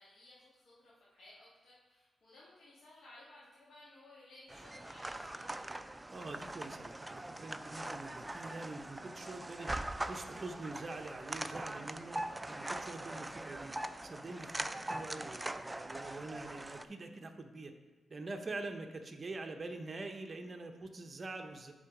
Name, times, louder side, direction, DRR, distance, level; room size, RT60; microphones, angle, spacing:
voice 1, 0.0-5.7, left 2 dB, 85° left, -9 dB, 1.6 m, -58 dB
sound 1, 4.5-16.9, right 1 dB, 15° right, 0.3 m, -42 dB
voice 2, 6.1-9.7 10.0-13.7 14.0-17.7 18.1-21.7, right 2 dB, 40° right, 4 dB, 0.7 m, -45 dB
7.5 x 3.9 x 4.8 m, 1.2 s
cardioid pair, 70°, 0 cm